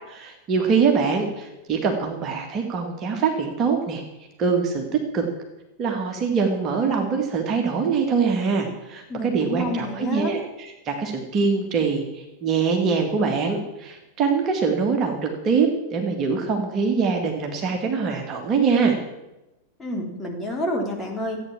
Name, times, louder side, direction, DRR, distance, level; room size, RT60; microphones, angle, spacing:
voice 1, 0.1-4.0 4.4-5.3 5.8-19.0, right 5 dB, 30° right, 2 dB, 2.1 m, -23 dB
voice 2, 9.1-10.3 19.8-21.4, left 1 dB, 10° left, -1 dB, 3.2 m, -28 dB
14.5 x 8.9 x 7.4 m, 0.99 s
figure-of-eight pair, 90°, 0 cm